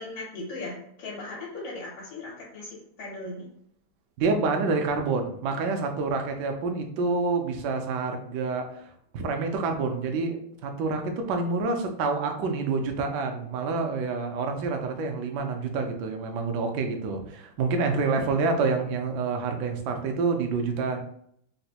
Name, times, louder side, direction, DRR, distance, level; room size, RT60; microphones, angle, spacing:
voice 1, 0.0-3.5 17.7-17.8, left 2 dB, 90° left, -5 dB, 1.9 m, -38 dB
voice 2, 4.2-21.0, right 4 dB, 75° right, 4 dB, 1.0 m, -28 dB
4.1 x 2.2 x 2.8 m, 0.68 s
omnidirectional pair, 2.3 m